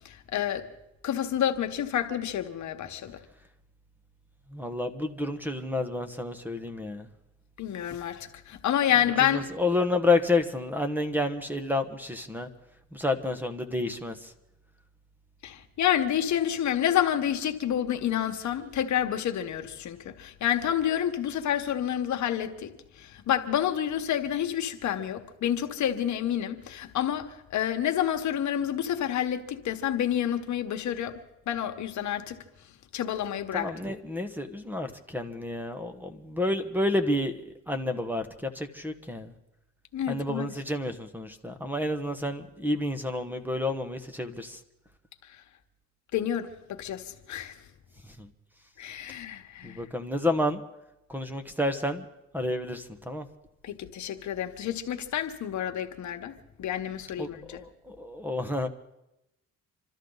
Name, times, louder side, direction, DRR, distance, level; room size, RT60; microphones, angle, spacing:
voice 1, 0.0-0.7 1.0-3.2 7.6-9.5 15.4-22.7 23.0-31.2 31.5-32.4 32.9-33.9 39.9-40.5 46.1-47.5 48.8-49.8 53.6-57.6, left 10 dB, 70° left, 1.4 m, -29 dB
voice 2, 4.5-7.1 9.2-12.5 12.9-14.3 33.5-39.3 40.1-44.6 48.2-48.3 49.6-50.6 51.1-52.0 52.3-53.3 57.2-58.7, left 2 dB, 5° right, 1.3 m, -30 dB
27.0 x 13.0 x 4.0 m
cardioid pair, 90°, 30 cm